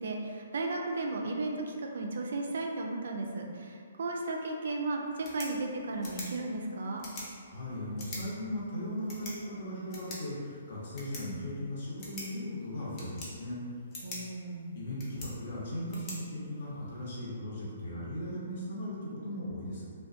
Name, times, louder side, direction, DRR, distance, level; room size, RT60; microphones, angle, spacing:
voice 1, 0.0-7.1 14.0-14.7, right 2 dB, 65° right, 1 dB, 0.3 m, -35 dB
sound 1, 5.0-17.0, left 2 dB, 30° left, 0.6 m, -47 dB
voice 2, 7.4-13.6 14.7-19.9, left 1 dB, 60° left, -6 dB, 0.8 m, -38 dB
2.3 x 2.2 x 2.5 m, 2.2 s
hypercardioid pair, 135°, 0 cm